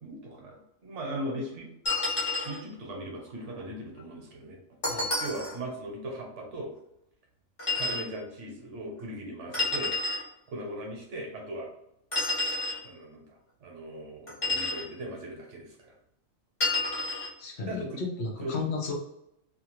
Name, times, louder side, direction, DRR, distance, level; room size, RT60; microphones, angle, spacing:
voice 1, 0.0-1.7 2.4-4.6 4.9-6.7 7.8-9.9 10.5-11.7 12.8-15.9 17.7-18.0 18.4-18.5, right 1 dB, 65° right, 0 dB, 1.1 m, -39 dB
sound 1, 1.9-2.6 4.8-5.6 7.6-8.1 9.5-10.2 12.1-12.8 14.3-14.9 16.6-17.3, left 3 dB, 30° left, 0.9 m, -29 dB
voice 2, 17.4-18.9, left 4 dB, 60° left, -2 dB, 0.9 m, -34 dB
2.9 x 2.3 x 2.9 m, 0.80 s
omnidirectional pair, 1.3 m